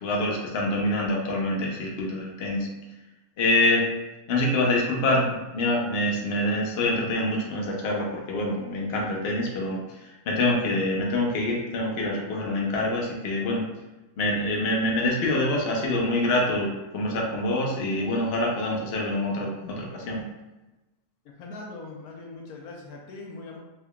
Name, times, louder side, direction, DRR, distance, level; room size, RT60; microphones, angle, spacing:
voice 1, 0.0-2.7 3.4-3.8 4.3-9.8 10.3-13.6 14.2-20.2, left 1 dB, 50° left, -2 dB, 0.8 m, -25 dB
voice 2, 21.4-23.6, left 3 dB, 75° left, 0 dB, 1.1 m, -41 dB
3.5 x 3.3 x 2.3 m, 1.0 s
omnidirectional pair, 1.6 m